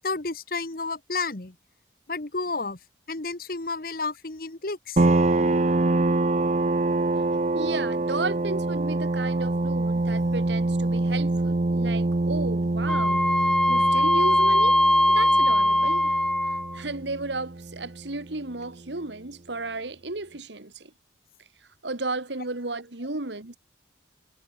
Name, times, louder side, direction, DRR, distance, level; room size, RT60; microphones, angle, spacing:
voice 1, 0.0-1.5 2.1-2.8 3.1-5.0, left 3 dB, 50° left, 1.4 m, -31 dB
sound 1, 5.0-18.2, right 2 dB, 40° right, 0.6 m, -25 dB
voice 2, 7.5-13.2 13.7-14.8 15.1-16.2 16.7-20.9 21.8-23.6, right 3 dB, 75° right, 2.0 m, -33 dB
Wind instrument woodwind instrument, 12.9-16.8, left 1 dB, 5° left, 0.7 m, -21 dB
head